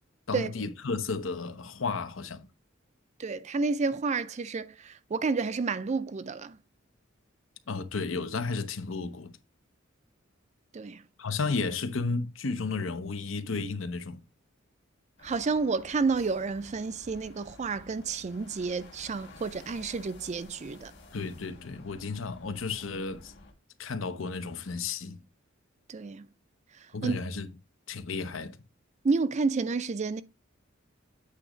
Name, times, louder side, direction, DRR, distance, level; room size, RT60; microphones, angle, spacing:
voice 1, 0.3-2.5 7.7-9.3 11.2-14.2 21.1-23.3 23.8-25.2 26.9-27.5 27.9-28.6, left 4 dB, 75° left, 0.8 m, -33 dB
voice 2, 3.2-6.6 10.7-11.0 15.2-20.9 25.9-26.3 27.0-27.2 29.0-30.2, right 4 dB, 35° right, 0.4 m, -30 dB
sound 1, 15.2-23.5, left 2 dB, 60° left, 1.9 m, -52 dB
8.5 x 2.9 x 4.9 m
head